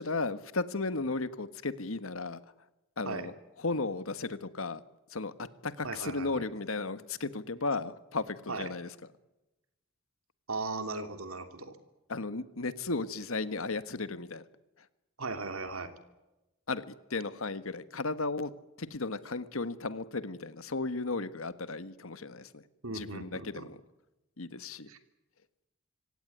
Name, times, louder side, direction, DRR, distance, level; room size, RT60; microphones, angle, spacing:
voice 1, 0.0-2.4 3.0-3.3 3.6-4.8 5.1-8.9 12.1-14.4 16.7-18.5 18.8-22.6 22.9-23.8 24.4-24.9, left 3 dB, 80° left, 14 dB, 1.5 m, -35 dB
voice 2, 5.8-6.4 8.5-8.7 10.5-11.8 15.2-15.9 22.8-23.7 24.9-25.0, right 3 dB, 90° right, 9 dB, 3.0 m, -37 dB
25.5 x 17.0 x 9.9 m, 0.99 s
head